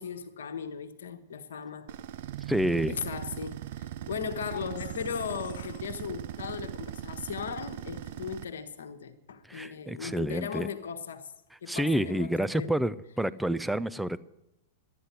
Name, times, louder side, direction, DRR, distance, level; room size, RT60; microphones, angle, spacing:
voice 1, 0.0-1.9 2.9-3.6 4.1-11.3 11.6-12.7, left 7 dB, 65° left, 1.2 m, -37 dB
sound 1, 1.9-8.5, right 12 dB, 50° right, 0.5 m, -39 dB
voice 2, 2.5-2.9 9.5-10.7 11.7-14.2, right 1 dB, 5° right, 0.4 m, -29 dB
12.5 x 9.3 x 8.1 m
figure-of-eight pair, 95°, 0 cm